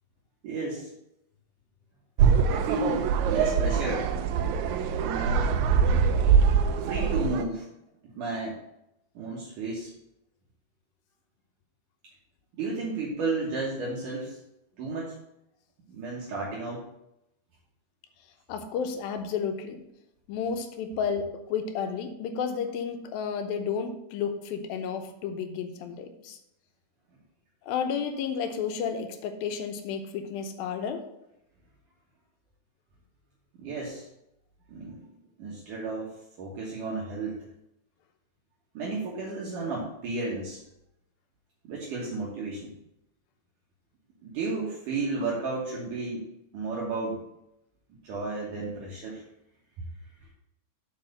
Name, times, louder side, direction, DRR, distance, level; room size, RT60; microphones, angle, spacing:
voice 1, 0.4-0.9 2.5-4.1 4.9-5.7 6.9-7.7 8.0-8.6 9.1-9.9 12.5-14.4 14.8-15.1 15.9-16.9 33.6-34.1 34.7-35.1 35.4-37.4 38.7-40.6 41.6-42.7 44.2-46.3 46.5-47.2 48.0-49.2, right 3 dB, 70° right, -5 dB, 2.8 m, -33 dB
sound 1, 2.2-7.4, right 6 dB, 85° right, 1.6 m, -23 dB
voice 2, 18.5-19.8 20.3-26.4 27.6-31.1, left 6 dB, 85° left, 6 dB, 2.7 m, -32 dB
7.4 x 4.8 x 6.6 m, 0.84 s
omnidirectional pair, 4.1 m